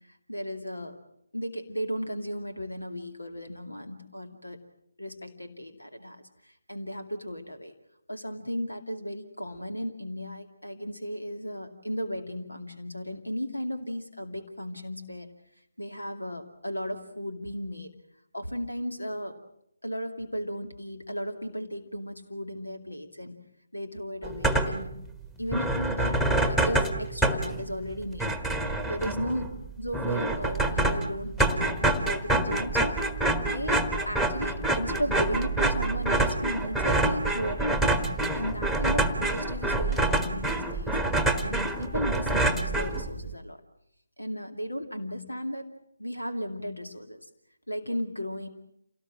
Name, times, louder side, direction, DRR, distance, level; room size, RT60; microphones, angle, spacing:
voice 1, 0.1-1.0 1.3-4.6 5.0-7.7 8.1-15.3 15.8-17.9 18.3-19.4 19.8-23.4 23.7-24.9 25.4-28.3 28.9-29.5 29.8-33.0 33.5-33.8 34.1-37.8 38.3-43.6 44.2-45.7 46.0-47.2 47.7-48.5, equal, 85° left, 6 dB, 2.4 m, -35 dB
sound 1, 24.2-24.9 25.2-25.3 25.5-43.3, right 2 dB, 5° left, 1.3 m, -27 dB
28.0 x 18.5 x 7.6 m, 0.77 s
figure-of-eight pair, 150°, 0 cm